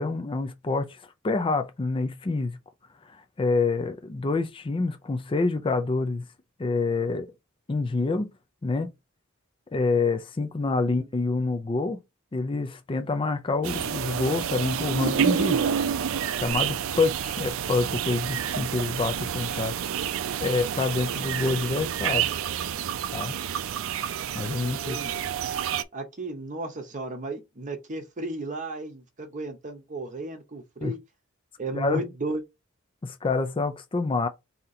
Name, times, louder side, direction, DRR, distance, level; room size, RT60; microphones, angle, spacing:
voice 1, 0.0-2.6 3.1-6.2 6.6-7.3 7.7-8.3 8.6-8.9 9.7-12.0 12.3-15.6 16.3-19.7 20.4-22.3 23.1-23.4 24.3-25.0 30.8-30.9 31.7-32.1 33.0-34.3, left 3 dB, 25° left, 0.4 m, -27 dB
sound 1, 13.6-25.8, right 8 dB, 65° right, 0.4 m, -29 dB
voice 2, 24.6-25.3 25.9-31.0 31.6-32.4, right 2 dB, 35° right, 0.8 m, -34 dB
3.7 x 2.8 x 4.1 m
head